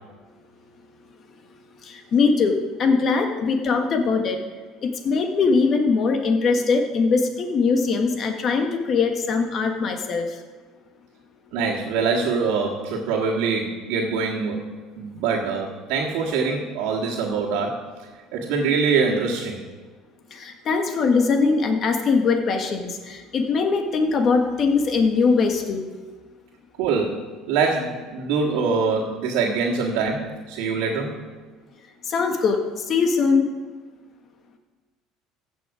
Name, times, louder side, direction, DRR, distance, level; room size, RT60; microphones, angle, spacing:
voice 1, 1.8-4.4 4.8-10.3 20.3-25.8 32.1-32.6 32.9-33.5, left 4 dB, 50° left, 5 dB, 1.5 m, -21 dB
voice 2, 11.5-14.6 15.0-19.6 26.8-31.2, right 5 dB, 75° right, -6 dB, 1.8 m, -24 dB
15.0 x 6.2 x 4.9 m, 1.4 s
supercardioid pair, 80°, 0 cm